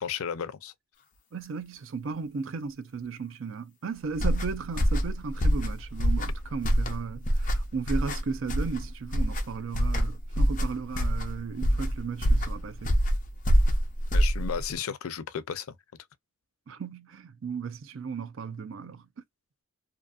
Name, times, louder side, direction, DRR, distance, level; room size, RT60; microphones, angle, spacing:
voice 1, 0.0-0.7 14.1-15.7, left 7 dB, 90° left, 0.4 m, -34 dB
voice 2, 1.3-13.0 16.7-19.1, right 5 dB, 70° right, 0.4 m, -35 dB
sound 1, 4.1-14.7, equal, 40° left, 0.6 m, -26 dB
2.6 x 2.5 x 2.2 m
head